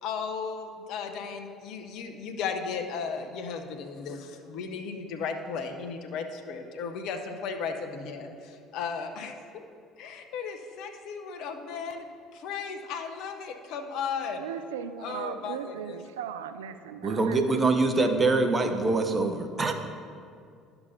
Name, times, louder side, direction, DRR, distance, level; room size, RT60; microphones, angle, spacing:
voice 1, 0.0-9.6 10.0-12.1 12.3-14.4 15.0-16.0, left 5 dB, 65° left, 5 dB, 0.7 m, -35 dB
voice 2, 14.4-17.7, right 8 dB, 85° right, 10 dB, 0.3 m, -38 dB
voice 3, 17.0-19.7, right 3 dB, 30° right, 6 dB, 0.8 m, -24 dB
11.0 x 6.8 x 2.7 m, 2.3 s
hypercardioid pair, 65°, 0 cm